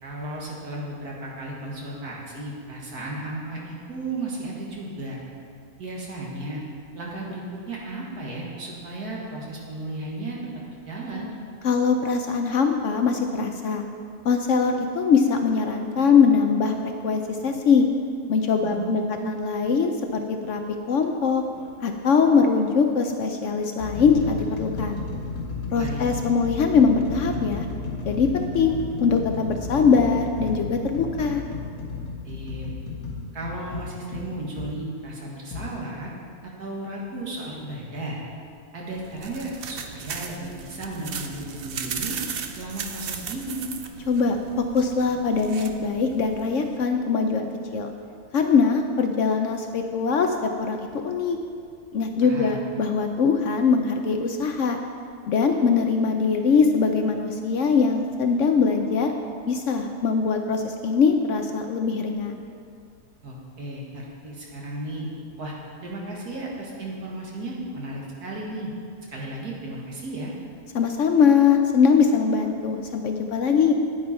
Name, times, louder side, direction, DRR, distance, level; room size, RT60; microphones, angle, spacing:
voice 1, 0.0-5.2 5.8-6.6 6.9-10.4 10.9-11.3 18.6-19.3 25.8-26.2 32.2-32.7 33.3-36.1 36.6-38.2 38.7-42.2 42.5-43.6 52.2-52.6 63.2-65.1 65.4-65.5 65.8-68.7 69.1-70.3, right 2 dB, 75° right, -3 dB, 2.2 m, -34 dB
voice 2, 11.6-13.8 14.2-16.7 17.0-17.9 18.3-19.9 20.3-20.6 20.9-21.4 21.8-25.0 25.7-27.7 28.1-31.4 44.1-47.9 48.3-50.8 51.0-51.4 51.9-54.8 55.3-59.1 59.5-62.4 70.7-73.7, left 5 dB, 65° left, 5 dB, 0.8 m, -22 dB
sound 1, 21.5-21.7 22.6-22.8 23.4-34.7 35.5-35.7, left 4 dB, 90° left, 1.9 m, -33 dB
sound 2, 38.9-46.8, right 6 dB, 60° right, 0.6 m, -36 dB
9.6 x 9.4 x 4.3 m, 2.3 s
omnidirectional pair, 1.6 m